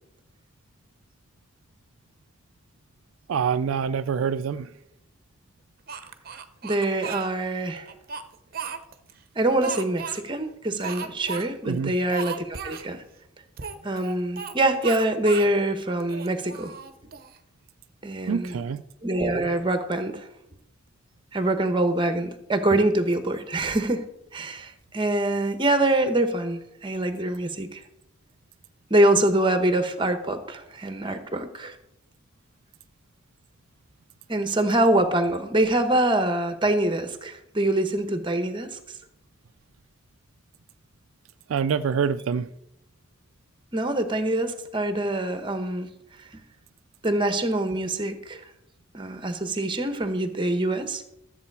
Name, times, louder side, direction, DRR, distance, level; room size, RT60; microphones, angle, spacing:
voice 1, 3.3-4.7 11.6-12.0 18.3-18.8 41.5-42.5, right 6 dB, 85° right, 0.4 m, -26 dB
Speech, 5.9-7.3 7.9-9.1 9.6-10.2 10.8-11.4 11.7-11.8 12.1-12.9 13.6-14.6 14.8-15.5 16.0-17.4, right 6 dB, 45° right, 0.8 m, -36 dB
voice 2, 6.6-7.9 9.4-13.0 13.8-16.7 18.0-18.6 19.0-20.3 21.3-24.1 24.3-27.8 28.9-31.7 34.3-38.8 43.7-45.9 47.0-48.4 48.9-51.2, right 1 dB, 25° right, 1.1 m, -24 dB
13.5 x 7.6 x 4.7 m
head